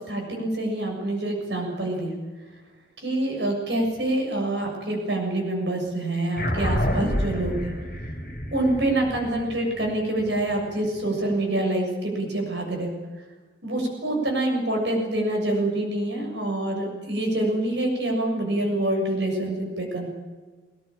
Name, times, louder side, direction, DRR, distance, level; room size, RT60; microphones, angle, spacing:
voice 1, 0.0-2.1 3.0-7.7 8.5-12.9 13.6-20.1, right 1 dB, 75° right, 1 dB, 7.1 m, -26 dB
sound 1, 6.4-11.1, equal, 50° left, 4.9 m, -29 dB
20.0 x 19.0 x 8.9 m, 1.4 s
head